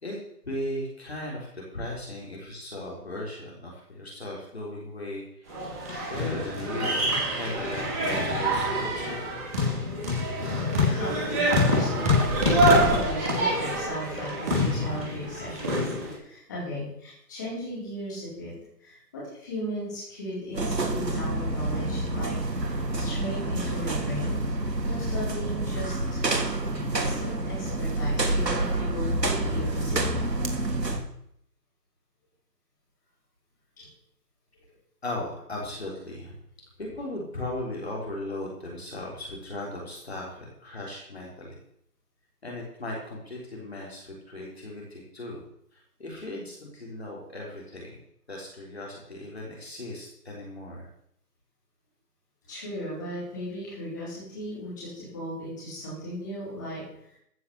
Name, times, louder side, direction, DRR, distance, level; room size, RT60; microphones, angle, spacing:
voice 1, 0.4-9.2 35.0-36.3 36.8-41.6 42.4-45.4 45.7-47.9 48.3-50.9, left 1 dB, 40° left, -3 dB, 3.8 m, -37 dB
sound 1, 5.5-16.1, equal, 10° right, 3.2 m, -25 dB
voice 2, 10.8-22.3 23.0-24.5 24.8-26.2 26.9-30.0 33.8-33.9 52.5-56.8, equal, 10° left, -9 dB, 4.3 m, -36 dB
sound 2, 20.5-31.0, right 2 dB, 85° right, 3.1 m, -28 dB
14.5 x 6.6 x 8.0 m, 0.72 s
figure-of-eight pair, 180°, 49 cm